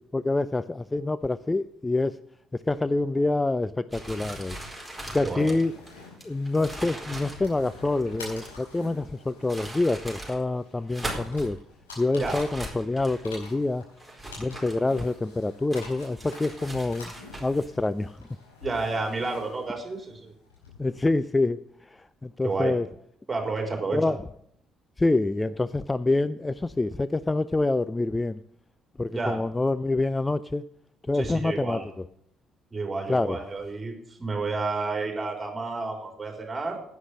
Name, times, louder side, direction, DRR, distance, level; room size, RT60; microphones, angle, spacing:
voice 1, 0.1-2.2 2.5-4.6 5.1-5.7 6.2-11.6 12.0-13.8 14.4-17.1 17.4-18.3 20.8-21.6 21.9-22.9 23.9-24.2 25.0-28.4 29.0-30.6 31.1-31.8 33.1-33.4, left 2 dB, 15° left, 15 dB, 0.4 m, -26 dB
sound 1, 3.9-8.7 9.3-10.4 10.8-11.5 12.2-13.4 14.0-15.3 15.7-17.7, right 1 dB, 5° right, 4.5 m, -40 dB
sound 2, 5.4-21.2, left 3 dB, 80° left, 4.6 m, -47 dB
voice 2, 18.6-20.3 22.4-22.7 23.3-24.2 29.1-29.4 31.1-31.9 32.7-36.8, right 3 dB, 25° right, 3 dB, 3.9 m, -30 dB
11.0 x 9.4 x 6.3 m, 0.70 s
figure-of-eight pair, 45°, 0 cm